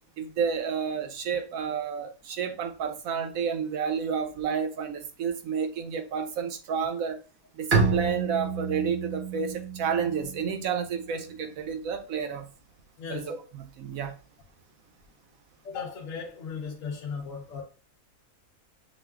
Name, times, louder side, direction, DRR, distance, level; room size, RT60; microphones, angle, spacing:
voice 1, 0.2-7.2 7.6-12.5 13.1-14.1, right 6 dB, 70° right, 0.9 m, -30 dB
Bowed string instrument, 7.7-11.2, right 4 dB, 40° right, 0.9 m, -29 dB
voice 2, 13.0-13.3 15.6-17.6, left 5 dB, 65° left, 1.0 m, -36 dB
6.3 x 2.3 x 2.3 m
omnidirectional pair, 1.6 m